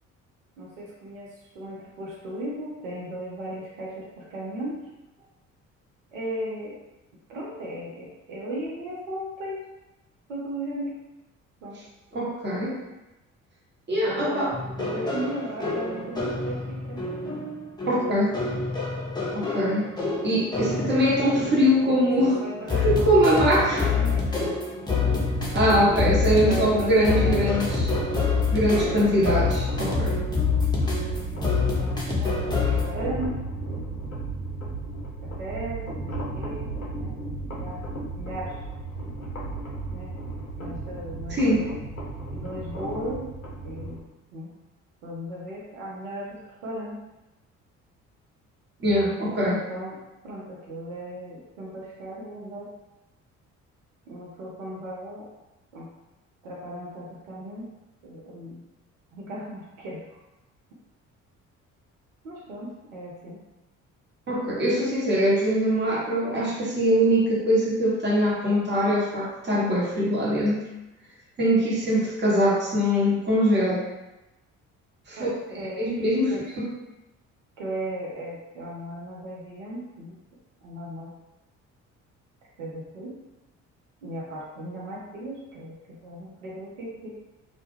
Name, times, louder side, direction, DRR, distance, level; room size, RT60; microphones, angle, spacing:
voice 1, 0.6-4.8 6.1-6.8 7.3-9.6 10.3-10.9 11.6-11.8 14.0-17.0 22.0-22.8 23.4-24.3 25.4-27.4 28.7-28.9 31.3-33.3 33.6-34.2 35.2-37.9 38.2-38.6 39.9-40.1 40.6-41.7 42.3-43.3 43.6-44.5 45.0-47.0 49.3-50.0 50.2-52.7 54.1-55.3 55.7-55.9 56.4-57.7 58.0-58.6 59.1-60.0 62.2-63.4 75.2-75.9 76.3-76.4 77.6-80.2 80.6-81.1 82.6-83.2 84.0-87.1, right 1 dB, 80° right, -5 dB, 0.6 m, -36 dB
voice 2, 12.1-12.8 13.9-14.5 17.9-18.3 19.3-19.9 20.2-22.4 22.8-23.9 25.5-27.9 28.5-30.2 41.3-41.7 48.8-49.6 64.3-70.6 71.4-73.8 75.1-75.3 75.8-76.3 76.6-76.7, equal, 25° right, -5 dB, 0.9 m, -22 dB
sound 1, 14.5-32.8, left 4 dB, 10° left, 0.7 m, -27 dB
sound 2, 25.3-44.0, right 3 dB, 90° left, 0.6 m, -34 dB
2.2 x 2.2 x 3.1 m, 1.0 s
figure-of-eight pair, 50°, 39 cm